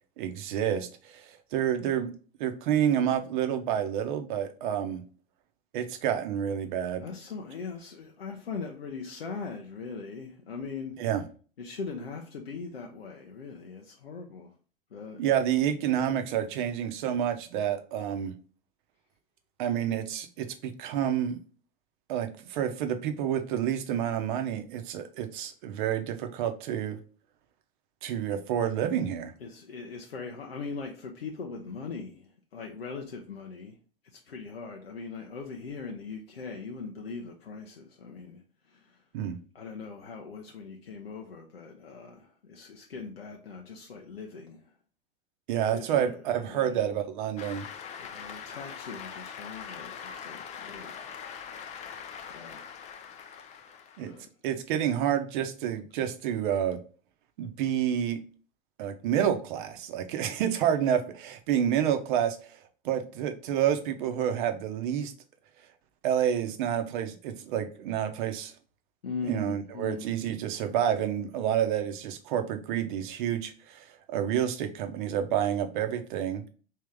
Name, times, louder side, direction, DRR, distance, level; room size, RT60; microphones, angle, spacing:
voice 1, 0.2-2.1 2.4-5.0 5.7-7.0 11.0-11.2 15.2-18.3 19.6-21.4 22.1-27.0 28.0-29.3 39.1-39.4 45.5-47.7 54.0-54.1 54.4-56.8 57.4-58.2 58.8-62.4 62.8-65.1 66.0-68.5 69.3-76.4, right 9 dB, 55° right, 0.8 m, -29 dB
voice 2, 7.0-10.9 11.6-14.5 14.9-15.2 29.4-33.8 34.0-38.4 38.7-39.0 39.5-44.7 45.7-46.2 46.5-46.8 48.0-50.9 52.3-52.6 54.0-54.3 69.0-70.1, left 4 dB, 85° left, 0.6 m, -40 dB
Cheering / Applause, 47.4-54.2, left 7 dB, 25° left, 0.4 m, -42 dB
3.5 x 2.8 x 3.4 m
hypercardioid pair, 90°, 29 cm